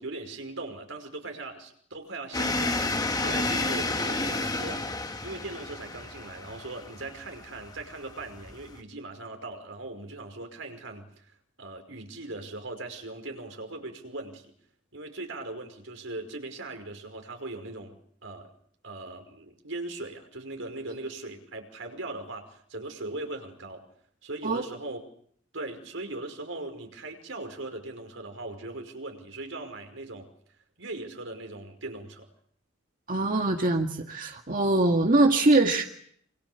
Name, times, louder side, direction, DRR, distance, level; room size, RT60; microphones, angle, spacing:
voice 1, 0.0-5.0 5.2-14.5 14.9-18.0 18.2-18.5 18.8-23.9 24.2-25.0 25.5-30.3 30.8-32.3, right 2 dB, 80° right, 5 dB, 5.4 m, -39 dB
sound 1, 2.3-8.8, left 2 dB, 20° left, 1.7 m, -31 dB
voice 2, 33.1-35.8, right 2 dB, 45° right, 3 dB, 2.0 m, -23 dB
27.0 x 27.0 x 7.0 m, 0.65 s
head